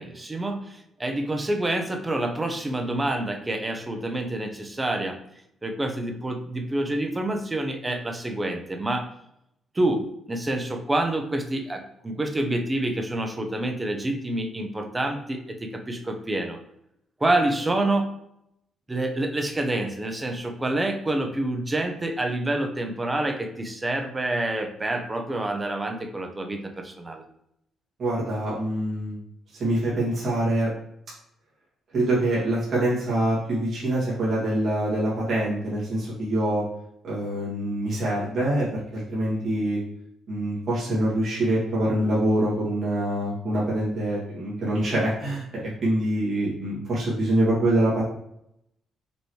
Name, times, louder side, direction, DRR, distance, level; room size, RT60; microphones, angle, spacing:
voice 1, 0.0-5.2 5.6-9.1 9.7-16.6 17.2-18.1 18.9-27.2, right 1 dB, 20° right, 5 dB, 0.8 m, -27 dB
voice 2, 28.0-29.2 29.6-30.7 31.9-36.6 37.0-39.8 40.3-48.0, right 1 dB, 50° right, -8 dB, 1.9 m, -25 dB
5.3 x 3.0 x 3.2 m, 0.76 s
cardioid pair, 90°, 0 cm